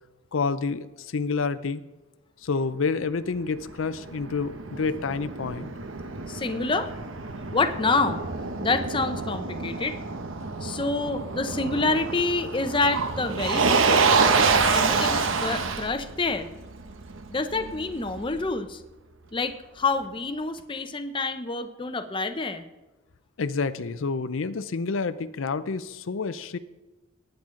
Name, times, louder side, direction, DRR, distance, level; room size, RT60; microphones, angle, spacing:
voice 1, 0.3-1.8 2.4-5.7 23.4-26.6, left 4 dB, 80° left, 13 dB, 0.5 m, -28 dB
Motor vehicle (road), 3.4-18.4, right 4 dB, 80° right, 1.0 m, -27 dB
voice 2, 6.3-6.9 7.5-8.2 8.6-10.0 10.6-14.1 14.6-16.5 17.3-18.8 19.3-22.6, left 3 dB, 25° left, 8 dB, 0.7 m, -27 dB
19.0 x 9.0 x 3.8 m, 1.1 s
head